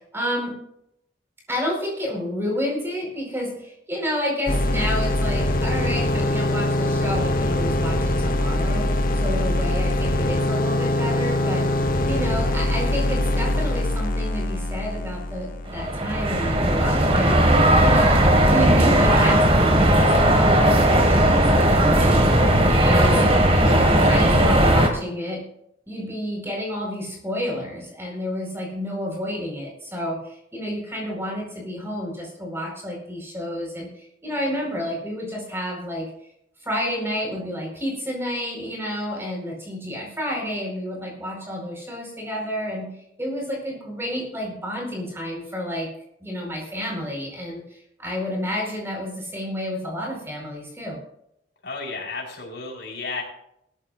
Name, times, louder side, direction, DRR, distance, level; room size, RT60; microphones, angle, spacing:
voice 1, 0.1-0.6 1.5-11.7 12.1-18.2 18.4-23.2 23.5-25.4 25.9-36.1 36.6-42.9 43.2-45.9 46.2-51.0, equal, 15° right, 0 dB, 4.7 m, -30 dB
sound 1, 4.5-16.3, left 1 dB, 50° left, 1.2 m, -23 dB
sound 2, 15.7-24.9, right 1 dB, 35° right, 1.9 m, -17 dB
voice 2, 51.6-53.2, left 4 dB, 75° left, -1 dB, 5.0 m, -32 dB
19.5 x 14.0 x 2.5 m, 0.77 s
head